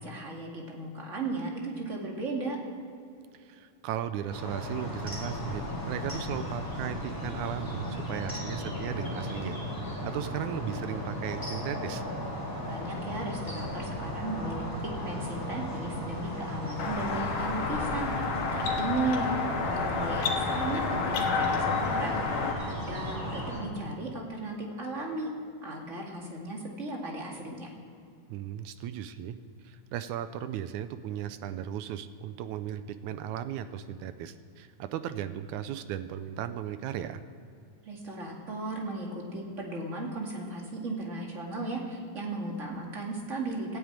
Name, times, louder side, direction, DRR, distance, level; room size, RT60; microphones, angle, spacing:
voice 1, 0.0-2.6 12.6-14.7 15.0-18.1 18.5-19.3 19.6-25.3 25.6-27.7 37.8-43.8, right 2 dB, 25° right, -1 dB, 2.0 m, -36 dB
voice 2, 3.3-9.6 10.0-12.0 28.3-29.4 29.6-37.2, right 10 dB, 75° right, 11 dB, 1.9 m, -36 dB
sound 1, 4.3-23.6, left 1 dB, 5° left, 3.7 m, -36 dB
sound 2, 16.8-22.5, left 4 dB, 75° left, 3.1 m, -30 dB
15.5 x 9.6 x 8.9 m, 2.5 s
omnidirectional pair, 3.7 m